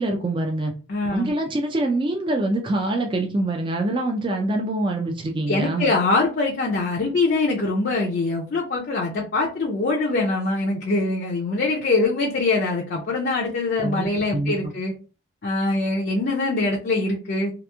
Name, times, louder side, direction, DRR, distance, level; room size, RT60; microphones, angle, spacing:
voice 1, 0.0-0.7 1.1-5.9 13.8-14.1 14.3-14.7, right 2 dB, 25° right, 2 dB, 0.3 m, -25 dB
voice 2, 0.9-1.3 5.5-14.9 15.4-17.5, left 3 dB, 45° left, -2 dB, 0.4 m, -23 dB
2.9 x 2.4 x 2.2 m, 0.35 s
head